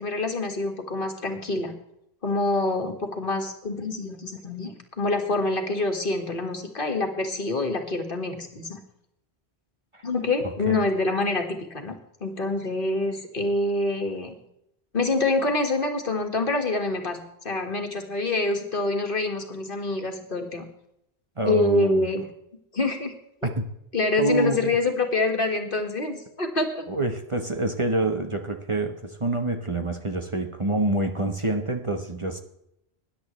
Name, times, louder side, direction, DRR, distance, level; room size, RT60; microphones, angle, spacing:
voice 1, 0.0-1.7 2.2-8.8 10.0-12.0 12.2-14.3 14.9-20.7 21.4-22.2 22.7-23.1 23.9-26.8, left 2 dB, 60° left, 4 dB, 1.9 m, -26 dB
voice 2, 10.4-10.8 21.4-22.1 23.4-23.7 24.2-24.7 26.9-32.4, right 2 dB, 30° right, 5 dB, 1.1 m, -27 dB
20.5 x 10.5 x 3.2 m, 0.79 s
omnidirectional pair, 1.1 m